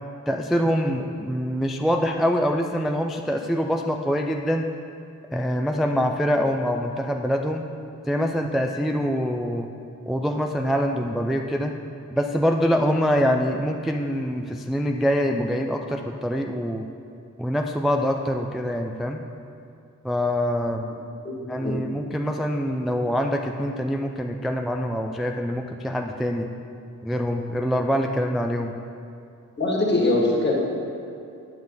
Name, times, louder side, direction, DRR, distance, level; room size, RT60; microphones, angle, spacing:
voice 1, 0.3-4.7 5.3-7.6 8.1-9.7 10.1-11.7 12.1-16.9 17.4-19.2 20.0-20.9 21.5-26.5 27.0-28.7, equal, ahead, 3 dB, 0.3 m, -24 dB
voice 2, 21.2-21.8 29.6-30.5, left 2 dB, 35° left, -3 dB, 1.7 m, -23 dB
9.6 x 7.0 x 3.9 m, 2.5 s
wide cardioid pair, 120°, 33 cm